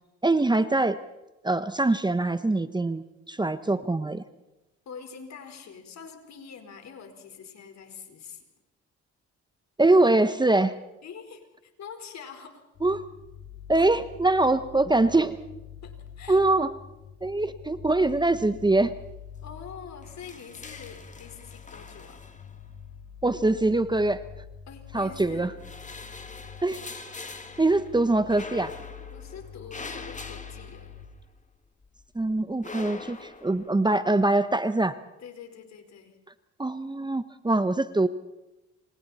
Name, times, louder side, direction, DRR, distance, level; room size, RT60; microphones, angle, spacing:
voice 1, 0.2-1.0 1.4-4.2 9.8-10.7 12.8-13.0 13.7-15.4 16.3-16.7 17.2-18.9 23.2-24.2 24.9-25.5 26.6-26.8 27.6-28.7 32.1-35.0 36.6-38.1, right 2 dB, 15° right, 11 dB, 1.1 m, -23 dB
voice 2, 4.8-8.5 11.0-12.7 13.7-13.9 15.8-16.4 19.4-22.2 24.7-25.5 29.1-30.9 35.2-36.2, left 6 dB, 65° left, 6 dB, 4.6 m, -45 dB
sound 1, 12.8-31.1, left 8 dB, 80° left, 8.0 m, -46 dB
sound 2, 18.5-19.0 19.3-19.4 19.8-22.9 23.8-24.7 25.2-31.5 31.8-33.7, left 3 dB, 25° left, 2.3 m, -43 dB
28.0 x 26.0 x 4.3 m, 0.99 s
cardioid pair, 90°, 30 cm